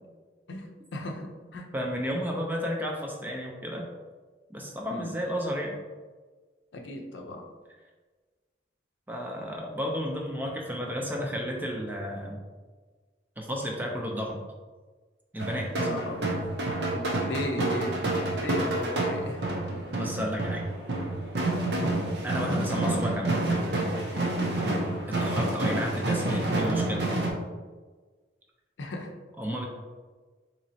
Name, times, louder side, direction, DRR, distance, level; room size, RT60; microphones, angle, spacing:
voice 1, 0.5-1.7 4.9-5.1 6.7-7.4 15.8-16.4 16.9-19.4 20.2-20.3 22.9-23.0 24.4-24.6 28.8-29.1, left 1 dB, 80° left, 2 dB, 0.6 m, -36 dB
voice 2, 1.7-3.9 4.5-5.7 9.1-12.4 13.4-14.4 15.3-15.7 19.9-20.6 22.2-23.4 25.1-27.0 29.4-29.6, equal, 10° right, 0 dB, 0.4 m, -32 dB
sound 1, 15.4-27.3, right 2 dB, 65° right, 0.7 m, -28 dB
4.0 x 3.0 x 2.7 m, 1.4 s
head